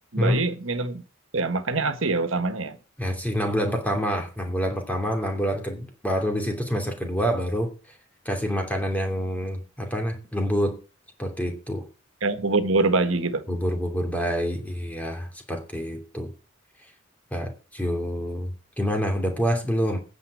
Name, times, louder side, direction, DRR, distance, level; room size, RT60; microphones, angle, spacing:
voice 1, 0.1-1.0 1.3-2.8 12.2-13.5, right 3 dB, 75° right, 1.5 m, -24 dB
voice 2, 3.0-7.7 8.2-10.8 11.2-11.9 13.5-16.3 17.3-20.0, equal, 5° left, 2.8 m, -27 dB
9.6 x 7.4 x 8.5 m
head